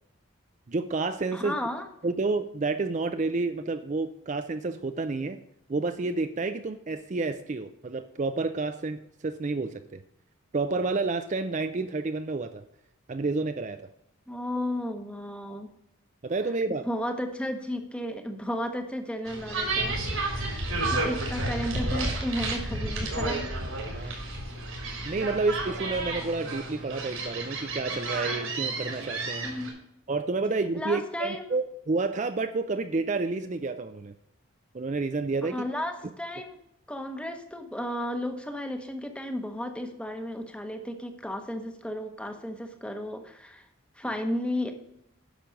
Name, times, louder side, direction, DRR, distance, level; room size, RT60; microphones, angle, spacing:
voice 1, 0.7-1.5 2.0-5.4 5.7-10.0 10.5-12.6 13.1-13.9 16.2-16.9 23.9-24.2 25.0-29.5 30.1-34.1 34.7-35.6, right 3 dB, 35° right, 9 dB, 0.4 m, -30 dB
voice 2, 1.3-1.8 14.3-15.7 16.9-23.5 23.9-24.3 29.4-29.8 30.7-31.4 35.4-36.6 36.9-43.6 43.9-44.7, left 1 dB, 5° left, 6 dB, 0.9 m, -34 dB
sound 1, 19.3-29.7, right 2 dB, 90° right, 3.9 m, -31 dB
10.0 x 6.1 x 5.2 m, 0.81 s
head